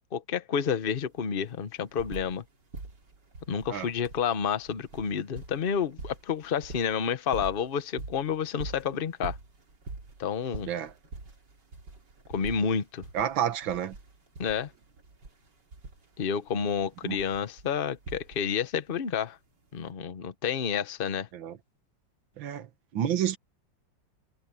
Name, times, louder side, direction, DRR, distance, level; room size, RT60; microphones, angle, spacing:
voice 1, 0.1-2.4 3.5-9.4 10.2-10.7 12.3-13.0 14.4-14.7 16.2-19.4 19.7-21.3, left 7 dB, 35° left, 1.0 m, -30 dB
sound 1, 0.7-0.8 1.0-2.5 2.7-18.7 19.8-19.9, right 2 dB, 65° right, 3.9 m, -44 dB
voice 2, 13.1-14.0 17.0-17.2 21.3-21.6 22.4-23.4, right 10 dB, 85° right, 2.0 m, -30 dB
omnidirectional pair, 2.1 m